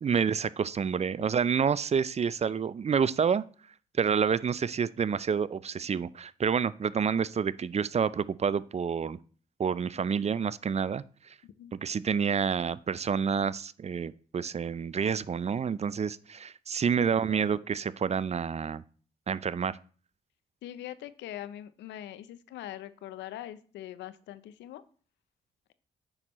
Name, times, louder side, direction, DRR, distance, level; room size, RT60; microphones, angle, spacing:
voice 1, 0.0-3.4 4.0-9.2 9.6-11.3 11.8-18.8 19.3-19.8, right 6 dB, 35° right, 18 dB, 0.4 m, -28 dB
voice 2, 11.4-11.7 17.0-17.5 20.6-24.8, left 12 dB, 80° left, 15 dB, 0.6 m, -42 dB
8.7 x 6.1 x 3.0 m, 0.42 s
hypercardioid pair, 45°, 18 cm